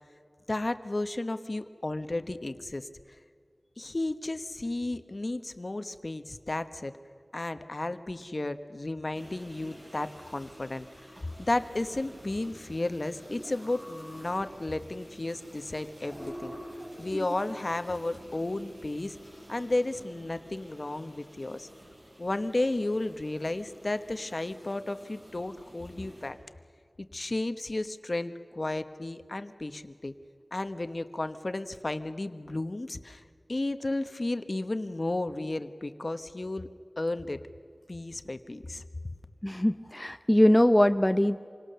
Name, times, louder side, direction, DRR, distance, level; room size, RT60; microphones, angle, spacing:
voice 1, 0.5-2.9 3.8-6.9 7.3-10.9 11.4-16.5 17.0-19.2 19.5-21.7 22.2-26.4 27.0-30.1 30.5-33.2 33.5-36.7 37.0-37.4 37.9-38.8, left 2 dB, 50° left, 10 dB, 1.2 m, -33 dB
sound 1, 9.1-26.3, equal, 50° right, 8.0 m, -48 dB
voice 2, 39.4-41.4, left 1 dB, 15° left, 8 dB, 0.7 m, -22 dB
27.5 x 25.0 x 6.9 m, 2.1 s
wide cardioid pair, 55°, 0 cm